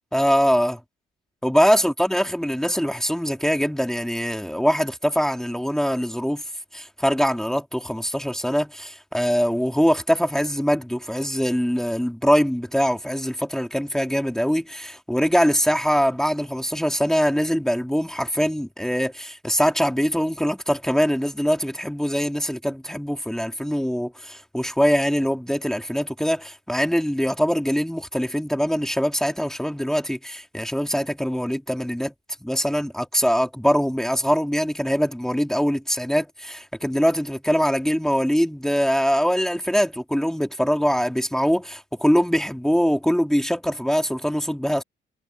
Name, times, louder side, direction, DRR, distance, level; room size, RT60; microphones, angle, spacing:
voice 1, 0.1-0.8 1.4-6.4 6.7-32.1 32.4-44.8, equal, ahead, 3.0 m, -23 dB
cardioid pair, 90°, 20 cm